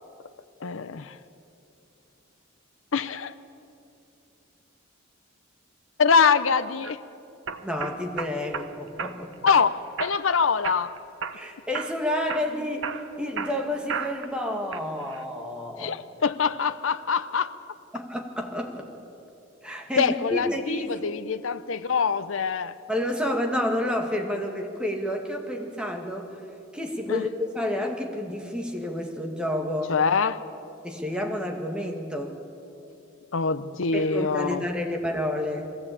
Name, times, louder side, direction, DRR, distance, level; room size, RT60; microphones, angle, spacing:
voice 1, 0.6-1.2 2.9-3.3 6.0-7.0 9.4-11.0 15.8-17.5 20.0-22.8 27.1-27.2 29.9-30.4 33.3-34.7, left 5 dB, 70° left, 12 dB, 0.7 m, -24 dB
sound 1, 6.6-6.9 7.5-8.7 9.0-9.6 10.0-10.3 10.6-11.4 11.7-12.0 12.3-14.3 14.7-15.2, right 6 dB, 65° right, 1.1 m, -33 dB
voice 2, 7.6-9.3 11.3-16.0 17.9-18.9 19.6-21.1 22.9-26.4 26.7-29.9 30.8-32.4 33.9-35.7, left 1 dB, 5° right, 2 dB, 1.9 m, -30 dB
21.0 x 16.5 x 8.6 m, 2.7 s
head